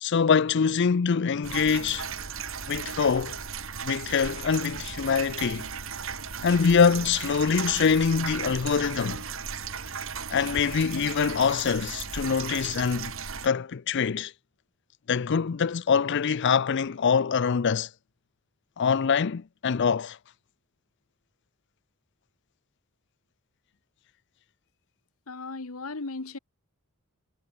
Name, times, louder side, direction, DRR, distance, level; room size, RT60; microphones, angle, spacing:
voice 1, 0.0-2.1 2.7-3.4 3.8-5.7 6.4-9.2 10.3-13.1 13.4-14.3 15.1-17.9 18.8-20.2, left 6 dB, 55° left, 0.5 m, -24 dB
sound 1, 1.4-13.5, right 6 dB, 65° right, 3.6 m, -36 dB
voice 2, 25.3-26.4, left 3 dB, 75° left, 1.3 m, -36 dB
head